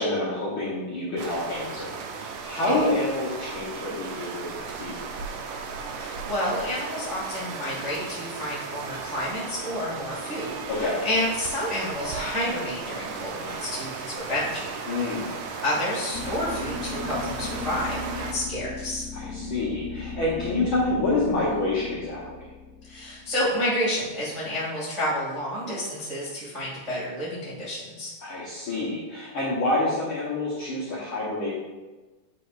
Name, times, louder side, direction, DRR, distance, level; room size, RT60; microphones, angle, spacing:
voice 1, 0.0-5.0 10.7-11.0 14.9-15.4 19.1-22.4 28.2-31.5, left 2 dB, 70° left, -6 dB, 1.2 m, -28 dB
sound 1, 1.2-18.3, right 5 dB, 75° right, 1.8 m, -36 dB
voice 2, 6.0-15.1 15.6-19.1 22.8-28.1, left 1 dB, 20° right, -8 dB, 0.9 m, -30 dB
sound 2, 16.1-24.1, left 4 dB, 85° left, 2.2 m, -36 dB
9.4 x 4.9 x 2.5 m, 1.2 s
omnidirectional pair, 3.9 m